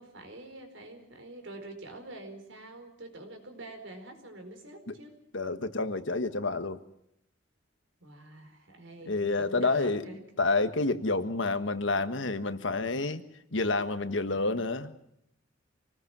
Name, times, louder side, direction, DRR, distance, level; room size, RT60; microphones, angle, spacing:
voice 1, 0.0-5.1 8.0-10.2, right 2 dB, 75° right, 5 dB, 4.9 m, -46 dB
voice 2, 5.3-6.8 9.1-10.0 10.4-13.2 13.5-14.9, left 3 dB, 70° left, 10 dB, 1.5 m, -29 dB
26.0 x 19.5 x 6.1 m, 0.76 s
head